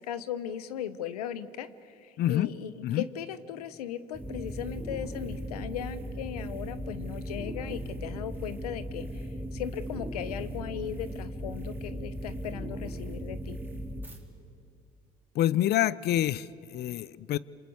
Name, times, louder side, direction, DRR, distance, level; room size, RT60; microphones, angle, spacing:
voice 1, 0.0-13.6, left 9 dB, 85° left, 14 dB, 1.1 m, -37 dB
voice 2, 2.2-2.5 2.8-3.0 15.3-17.4, left 13 dB, 60° left, 20 dB, 0.8 m, -27 dB
sound 1, 4.1-14.2, equal, 10° right, 4.2 m, -37 dB
27.0 x 26.0 x 8.0 m, 2.5 s
hypercardioid pair, 60°, 19 cm